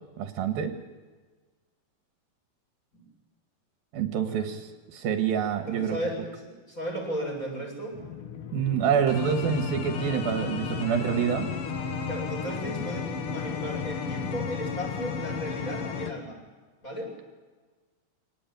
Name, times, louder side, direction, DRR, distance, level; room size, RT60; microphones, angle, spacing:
voice 1, 0.2-0.7 3.9-6.0 8.5-11.5, right 8 dB, 70° right, 7 dB, 3.2 m, -27 dB
voice 2, 4.1-4.5 5.7-8.0 12.1-16.4 16.8-17.1, equal, 20° left, 0 dB, 8.0 m, -35 dB
sound 1, 7.9-16.1, left 6 dB, 60° left, 1.4 m, -33 dB
25.5 x 18.5 x 9.4 m, 1.4 s
omnidirectional pair, 4.6 m